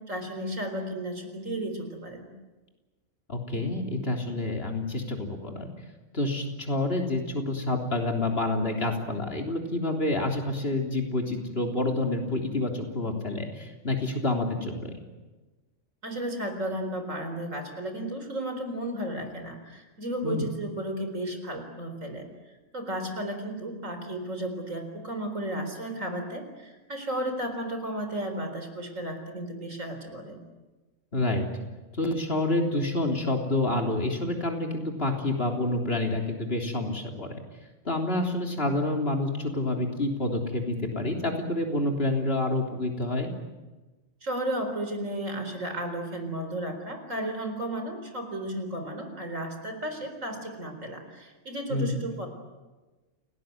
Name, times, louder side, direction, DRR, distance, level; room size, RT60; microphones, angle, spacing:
voice 1, 0.0-2.3 16.0-22.3 22.7-30.4 44.2-52.3, right 1 dB, 70° right, 7 dB, 4.5 m, -34 dB
voice 2, 3.3-5.7 6.1-14.9 20.2-20.4 31.1-31.4 32.0-37.4 37.9-43.3 51.7-52.0, left 2 dB, 45° left, 2 dB, 3.7 m, -28 dB
29.0 x 19.0 x 9.3 m, 1.2 s
omnidirectional pair, 1.4 m